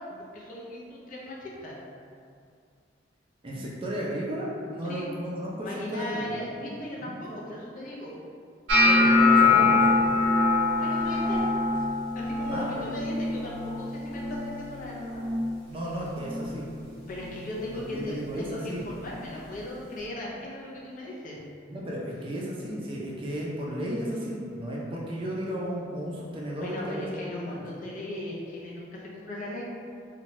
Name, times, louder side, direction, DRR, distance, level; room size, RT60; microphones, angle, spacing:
voice 1, 0.0-1.8 4.8-5.1 5.6-8.1 10.8-11.4 12.1-15.3 17.1-21.4 26.6-29.6, left 1 dB, 45° left, -5 dB, 0.5 m, -37 dB
voice 2, 3.4-6.4 7.0-7.4 8.8-9.9 12.5-12.9 15.7-16.7 17.9-18.8 21.7-27.1 27.5-27.6, equal, 30° right, -5 dB, 0.4 m, -34 dB
sound 1, 8.7-14.8 15.1-15.6 15.9-16.5 17.1-17.3 19.1-19.2, left 3 dB, 65° right, 0.6 m, -23 dB
2.7 x 2.2 x 2.9 m, 2.3 s
head